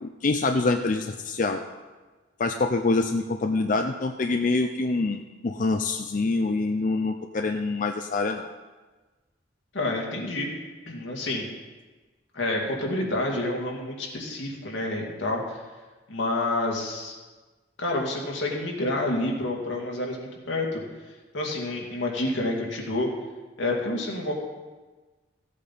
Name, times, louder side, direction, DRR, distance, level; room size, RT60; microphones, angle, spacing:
voice 1, 0.0-1.6 2.4-8.5, left 3 dB, 45° left, 5 dB, 0.5 m, -25 dB
voice 2, 9.7-10.6 10.9-11.4 12.3-15.6 16.1-17.2 17.8-20.8 21.3-23.1 23.6-24.3, left 2 dB, 90° left, -1 dB, 2.2 m, -28 dB
15.5 x 8.4 x 4.1 m, 1.3 s
head